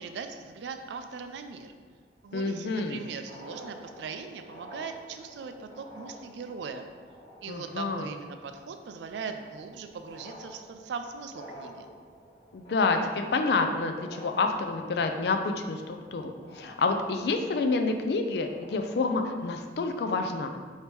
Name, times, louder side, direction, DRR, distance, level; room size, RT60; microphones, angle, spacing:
voice 1, 0.0-1.7 2.2-6.9 7.4-11.9, right 5 dB, 75° right, 7 dB, 0.3 m, -40 dB
sound 1, 0.6-1.7 2.9-3.0 3.2-19.7, equal, 25° left, 1.2 m, -50 dB
voice 2, 2.3-3.0 7.5-8.1 12.5-20.5, left 3 dB, 65° left, 5 dB, 0.3 m, -28 dB
3.4 x 2.8 x 4.5 m, 1.5 s
head